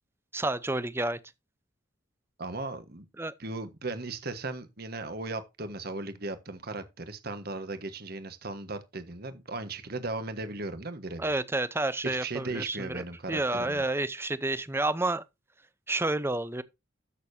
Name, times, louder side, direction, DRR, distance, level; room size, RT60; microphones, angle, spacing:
voice 1, 0.3-1.2 3.2-3.3 11.2-15.2 15.9-16.6, right 2 dB, 15° right, 0.7 m, -30 dB
voice 2, 2.4-3.0 3.4-11.3 12.0-13.8, right 2 dB, 55° right, 1.4 m, -37 dB
13.5 x 6.7 x 2.7 m
head